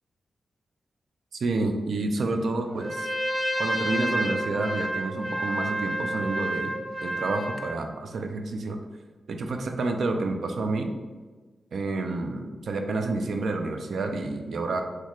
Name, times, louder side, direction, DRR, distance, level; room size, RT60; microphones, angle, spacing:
voice 1, 1.3-3.1 3.6-8.8 9.3-10.9 11.7-14.8, right 3 dB, 75° right, 5 dB, 0.3 m, -29 dB
Trumpet, 2.8-7.8, right 1 dB, 15° right, 0.5 m, -30 dB
3.0 x 2.2 x 3.7 m, 1.3 s
cardioid pair, 70°, 0 cm